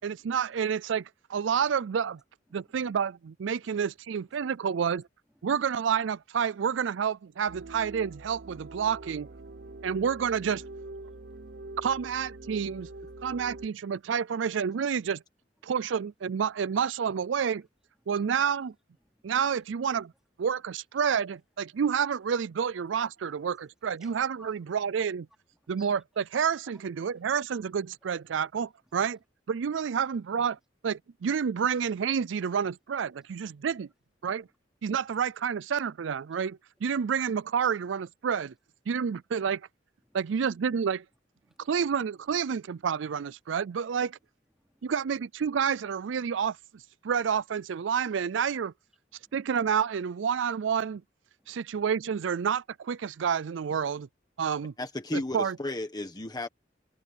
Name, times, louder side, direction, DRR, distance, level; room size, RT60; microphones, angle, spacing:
voice 1, 0.0-2.2 2.5-5.0 5.4-9.3 9.8-10.6 11.8-12.9 13.2-15.2 15.6-17.6 18.1-18.7 19.2-20.1 20.4-25.3 25.7-29.2 29.5-30.6 30.8-33.9 34.2-34.5 34.8-38.5 38.9-39.6 40.1-41.0 41.6-44.2 44.8-48.7 49.3-51.0 51.5-54.1 54.4-54.7 55.1-55.6, right 7 dB, 80° right, 0.4 m, -29 dB
sound 1, 7.5-13.7, right 2 dB, 60° right, 0.8 m, -44 dB
voice 2, 9.5-10.1 11.0-11.8 15.6-15.7 19.1-19.2 24.0-24.1 24.4-24.5 25.8-25.9 41.4-41.6 44.7-44.8 49.2-49.3 51.4-51.6, equal, 5° right, 4.0 m, -59 dB
voice 3, 54.8-56.5, left 1 dB, 20° left, 1.3 m, -33 dB
head